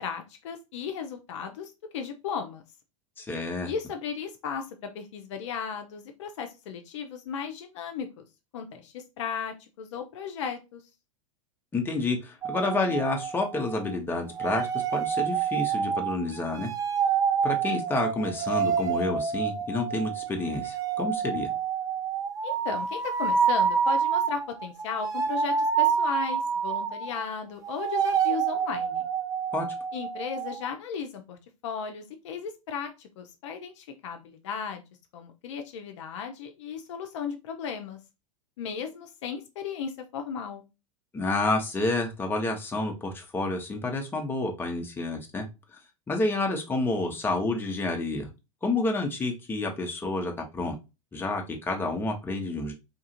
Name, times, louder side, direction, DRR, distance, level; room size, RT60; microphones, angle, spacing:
voice 1, 0.0-2.6 3.6-8.3 8.5-10.8 22.4-29.1 29.9-31.4 31.6-34.8 35.1-38.0 38.6-40.6, left 7 dB, 60° left, 6 dB, 0.5 m, -35 dB
voice 2, 3.2-3.7 11.7-16.7 17.4-21.5 29.5-29.7 41.1-45.5 46.1-48.3 48.6-50.8 51.1-52.7, left 2 dB, 10° left, 2 dB, 0.7 m, -29 dB
sound 1, 12.4-14.0 14.3-27.3 27.6-30.7, right 7 dB, 20° right, 0.4 m, -28 dB
2.9 x 2.4 x 2.7 m, 0.26 s
figure-of-eight pair, 90°, 17 cm